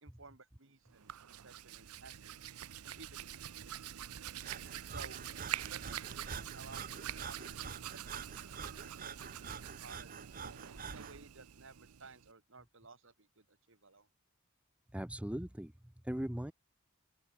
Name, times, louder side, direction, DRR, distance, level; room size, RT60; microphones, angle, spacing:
voice 1, 0.0-2.3 2.8-4.0 4.9-5.2 5.7-8.4 8.8-10.3 10.9-14.1, right 3 dB, 60° right, 2.3 m, -56 dB
Hands, 0.9-12.3, right 10 dB, 85° right, 0.6 m, -45 dB
Breathing, 4.4-11.2, right 5 dB, 40° right, 1.1 m, -47 dB
voice 2, 14.9-16.5, equal, 5° right, 0.5 m, -39 dB
open air
head